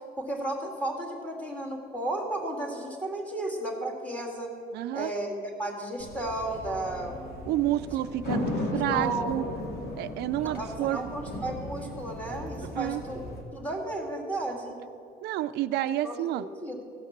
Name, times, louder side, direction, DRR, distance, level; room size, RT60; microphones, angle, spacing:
voice 1, 0.2-4.5 4.9-7.2 8.3-9.4 10.3-13.2 13.5-14.8 16.0-16.8, right 1 dB, 10° left, 1 dB, 2.5 m, -34 dB
voice 2, 4.7-5.1 7.5-9.4 10.0-11.1 12.6-13.0 15.2-16.4, right 13 dB, 75° right, 12 dB, 0.4 m, -30 dB
sound 1, 6.0-13.4, left 1 dB, 70° left, 2.4 m, -36 dB
16.0 x 5.8 x 7.3 m, 2.7 s
cardioid pair, 110°, 17 cm